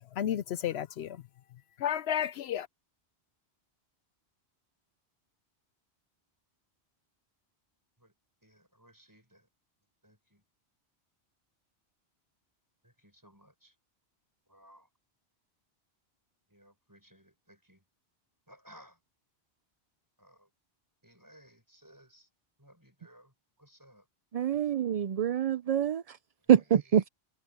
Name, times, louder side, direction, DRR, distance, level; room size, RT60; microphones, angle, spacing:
voice 1, 0.1-1.2 1.8-2.7, left 10 dB, 75° left, 0.8 m, -32 dB
voice 2, 8.4-9.5 10.0-10.4 12.8-13.7 14.5-14.9 16.5-17.8 18.5-19.0 20.2-20.5 21.0-22.3 22.6-23.3 23.6-24.1 24.5-24.7 26.5-26.6, equal, 15° right, 7.1 m, -59 dB
voice 3, 24.3-26.0 26.5-27.1, right 9 dB, 55° right, 0.4 m, -25 dB
omnidirectional pair, 1.1 m